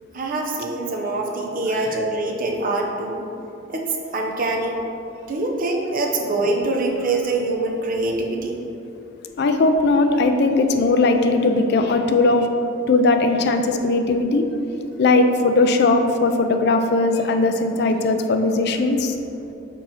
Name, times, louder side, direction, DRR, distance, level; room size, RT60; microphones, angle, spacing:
voice 1, 0.1-3.3 3.7-4.8 5.3-8.6, right 2 dB, 45° right, 1 dB, 0.7 m, -24 dB
voice 2, 9.4-12.5 12.9-14.4 15.0-19.2, left 3 dB, 60° left, 6 dB, 0.4 m, -18 dB
4.5 x 4.0 x 5.7 m, 2.9 s
head